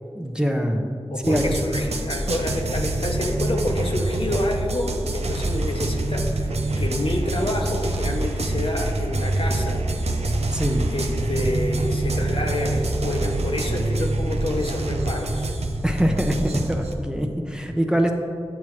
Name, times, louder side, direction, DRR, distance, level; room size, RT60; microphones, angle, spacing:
voice 1, 0.1-0.8 1.2-1.4 10.5-10.9 15.8-18.1, equal, 5° right, 3 dB, 0.7 m, -23 dB
voice 2, 1.1-9.8 10.9-15.5, left 1 dB, 60° left, 2 dB, 0.9 m, -28 dB
sound 1, 1.2-16.9, right 2 dB, 90° right, 0.6 m, -25 dB
9.0 x 7.1 x 3.2 m, 2.3 s
cardioid pair, 45°, 10 cm